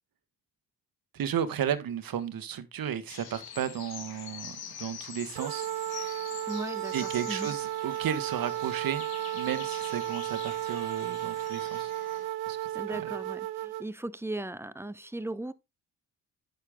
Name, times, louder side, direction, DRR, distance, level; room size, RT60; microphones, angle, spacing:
voice 1, 1.1-5.7 6.9-9.1 9.3-11.9 12.5-13.1, right 9 dB, 65° right, 1.4 m, -34 dB
sound 1, 3.1-12.3, left 8 dB, 75° left, 2.1 m, -45 dB
sound 2, 5.4-13.9, right 14 dB, 85° right, 0.6 m, -34 dB
voice 2, 6.5-7.5 12.7-15.5, right 1 dB, 5° right, 0.8 m, -37 dB
9.5 x 6.8 x 3.6 m
supercardioid pair, 55°, 37 cm